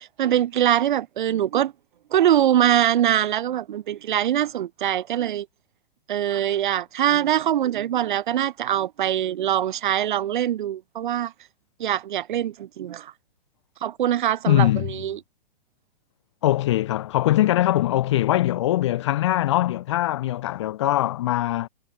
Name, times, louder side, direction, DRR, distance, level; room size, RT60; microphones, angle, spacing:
voice 1, 0.0-1.7 2.1-5.5 6.1-11.3 11.8-13.1 13.8-15.2, right 11 dB, 55° right, 0.9 m, -23 dB
voice 2, 14.5-14.9 16.4-21.7, left 14 dB, 30° left, 0.7 m, -22 dB
hypercardioid pair, 175°, 30 cm